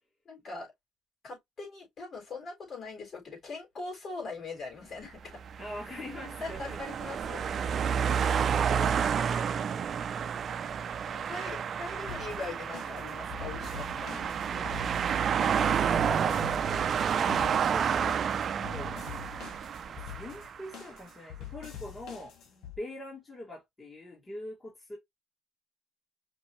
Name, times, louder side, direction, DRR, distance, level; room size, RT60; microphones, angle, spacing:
voice 1, 0.3-0.7 1.2-5.4 6.4-7.4 10.2-10.5 11.0-14.8 22.5-22.7, left 3 dB, 50° left, 3.8 m, -42 dB
sound 1, 5.3-20.7, right 7 dB, 55° right, 0.5 m, -30 dB
voice 2, 5.6-6.8 7.1-7.4 7.7-9.8 15.6-16.5 16.8-18.2 18.6-19.0 19.8-22.3 22.8-25.0, left 1 dB, 25° left, 2.2 m, -44 dB
sound 2, 12.1-22.8, left 11 dB, 80° left, 1.9 m, -45 dB
5.3 x 2.9 x 3.0 m
cardioid pair, 90°, 0 cm